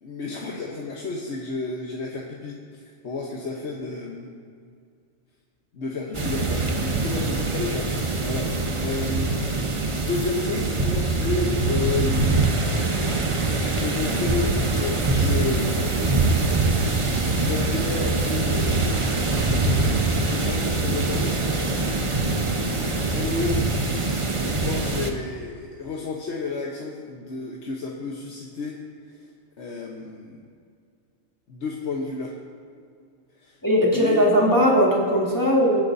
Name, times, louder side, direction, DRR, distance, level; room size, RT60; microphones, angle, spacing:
voice 1, 0.0-4.3 5.7-9.4 10.0-12.3 13.6-15.8 17.4-19.0 20.2-21.5 23.1-23.9 24.4-28.8 29.1-29.3 29.6-30.4 31.5-32.4 33.4-33.6 33.9-34.3, left 3 dB, 60° left, -1 dB, 1.3 m, -31 dB
sound 1, 6.1-25.1, right 3 dB, 30° right, 0.9 m, -23 dB
voice 2, 33.6-35.8, equal, 15° left, -3 dB, 1.6 m, -19 dB
22.0 x 9.5 x 2.7 m, 2.2 s
omnidirectional pair, 1.3 m